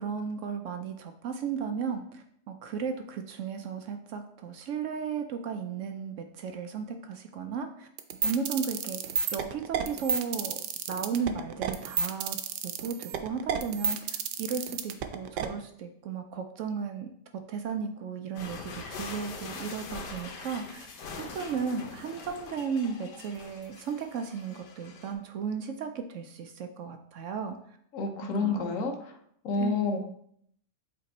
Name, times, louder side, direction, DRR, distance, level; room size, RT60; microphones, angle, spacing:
voice 1, 0.0-7.9 8.2-10.6 10.9-12.4 12.6-17.1 17.5-20.9 21.2-27.6 28.2-28.6 29.6-29.9, right 6 dB, 70° right, 6 dB, 0.7 m, -35 dB
sound 1, 8.0-15.5, right 7 dB, 90° right, 1.2 m, -30 dB
sound 2, 18.3-25.1, left 4 dB, 90° left, 1.5 m, -43 dB
voice 2, 27.9-29.2 29.4-30.0, left 4 dB, 60° left, 4 dB, 1.1 m, -29 dB
7.6 x 3.4 x 4.1 m, 0.68 s
omnidirectional pair, 1.8 m